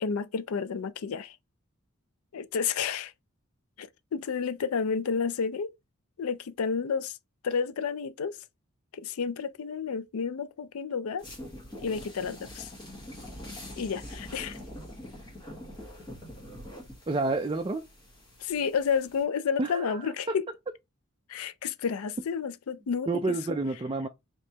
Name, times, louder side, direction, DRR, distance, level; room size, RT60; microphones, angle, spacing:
voice 1, 0.0-1.4 2.3-3.1 3.8-5.7 6.2-7.2 7.4-8.4 8.9-11.2 11.8-12.7 13.8-14.6 18.4-20.5 21.3-23.4, left 6 dB, 75° left, 0.4 m, -31 dB
sound 1, 11.2-19.2, left 1 dB, 20° left, 1.3 m, -44 dB
voice 2, 17.1-17.9 19.6-20.4 23.1-24.1, right 3 dB, 25° right, 0.3 m, -29 dB
5.2 x 3.1 x 2.8 m
head